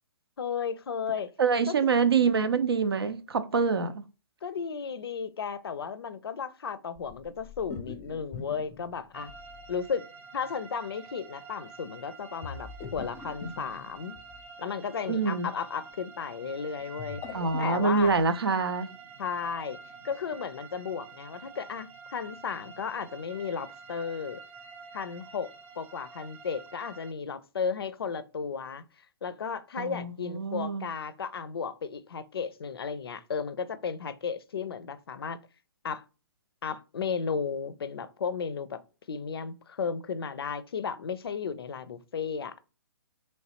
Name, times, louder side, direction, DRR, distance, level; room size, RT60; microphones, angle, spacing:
voice 1, 0.4-1.3 1.7-1.9 4.4-9.3 9.7-10.1 10.3-14.2 14.6-18.1 19.2-19.8 20.0-24.4 24.9-25.5 25.8-28.8 29.2-35.4 35.8-36.0 36.6-38.8 39.1-42.6, left 6 dB, 80° left, 0.4 m, -34 dB
voice 2, 1.4-4.0 15.1-15.5 17.3-18.9 29.8-30.9, right 5 dB, 85° right, 0.5 m, -26 dB
sound 1, 7.0-9.8 12.4-14.5 16.8-18.3, left 5 dB, 20° left, 0.5 m, -43 dB
sound 2, 9.1-27.1, right 5 dB, 25° right, 0.5 m, -48 dB
3.2 x 3.2 x 2.8 m
hypercardioid pair, 130°, 12 cm